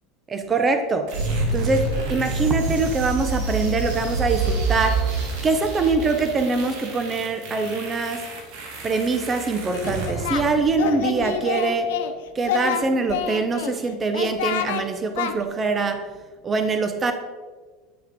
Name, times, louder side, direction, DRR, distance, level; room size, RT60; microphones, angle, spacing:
voice 1, 0.3-1.1 1.5-8.3 8.8-11.9 12.3-16.0 16.4-17.1, right 3 dB, 25° right, 7 dB, 0.9 m, -23 dB
sound 1, 1.1-11.0, right 3 dB, 65° right, 2.3 m, -28 dB
Singing, 9.7-10.4 10.7-12.1 12.4-13.7 14.1-14.8 15.1-15.3, left 9 dB, 80° left, 0.8 m, -27 dB
10.0 x 6.6 x 5.2 m, 1.4 s
supercardioid pair, 110°, 0 cm